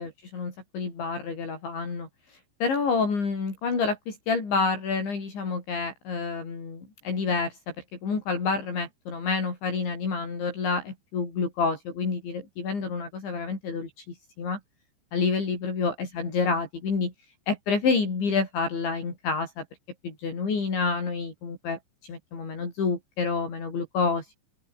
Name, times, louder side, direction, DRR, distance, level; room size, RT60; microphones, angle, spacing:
voice 1, 0.0-2.1 2.6-7.6 8.0-13.9 14.4-14.6 15.1-17.1 17.5-19.6 20.0-21.8 22.1-24.4, left 4 dB, 60° left, 9.5 m, -28 dB
open air
omnidirectional pair, 5.9 m